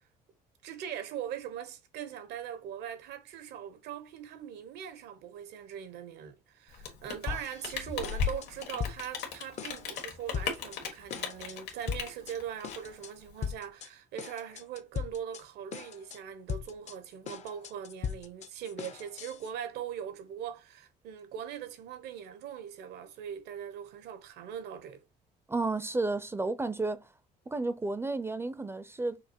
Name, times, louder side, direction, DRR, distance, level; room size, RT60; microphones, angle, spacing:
voice 1, 0.6-25.0, right 9 dB, 80° right, 0.9 m, -41 dB
Rain, 6.7-13.5, left 6 dB, 80° left, 1.6 m, -37 dB
sound 1, 7.3-7.7 8.0-9.3 9.6-10.1 10.3-10.8 11.1-12.3 12.6-13.1 13.4-13.9 14.2-15.4 15.7-16.2 16.5-19.5, left 7 dB, 45° left, 0.5 m, -39 dB
voice 2, 25.5-27.1 27.5-29.2, right 3 dB, 15° right, 0.4 m, -32 dB
5.7 x 2.4 x 2.8 m
cardioid pair, 110°, 17 cm